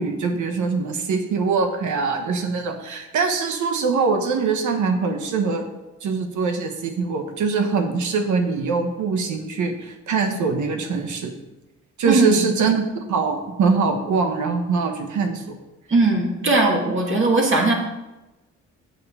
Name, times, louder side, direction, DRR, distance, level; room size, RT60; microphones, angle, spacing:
voice 1, 0.0-5.6 6.0-11.3 12.0-12.8 13.1-15.6, right 4 dB, 70° right, 5 dB, 1.3 m, -23 dB
voice 2, 12.0-12.5 15.9-17.7, right 2 dB, 40° right, 0 dB, 2.4 m, -19 dB
7.8 x 7.1 x 5.6 m, 1.0 s
cardioid pair, 90°, 30 cm